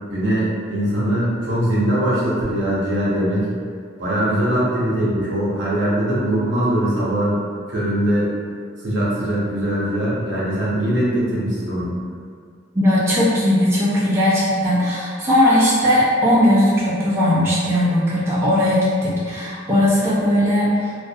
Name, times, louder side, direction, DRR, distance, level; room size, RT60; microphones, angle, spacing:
voice 1, 0.1-3.6 4.0-7.4 7.7-8.3 8.8-11.9, right 1 dB, 75° right, -7 dB, 0.8 m, -21 dB
voice 2, 12.7-20.9, left 1 dB, 15° right, -9 dB, 0.5 m, -18 dB
2.4 x 2.1 x 2.7 m, 2.1 s
head